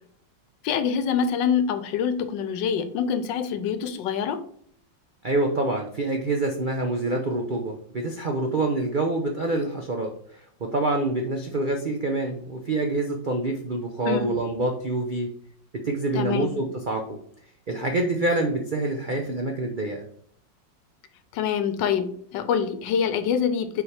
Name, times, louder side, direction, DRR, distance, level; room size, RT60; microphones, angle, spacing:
voice 1, 0.6-4.4 14.1-14.3 16.1-16.5 21.3-23.8, left 7 dB, 75° left, 11 dB, 1.3 m, -25 dB
voice 2, 5.2-10.1 10.6-15.3 15.8-17.2 17.7-20.0, right 2 dB, 90° right, 2 dB, 0.4 m, -26 dB
7.0 x 4.2 x 3.3 m, 0.62 s
omnidirectional pair, 2.0 m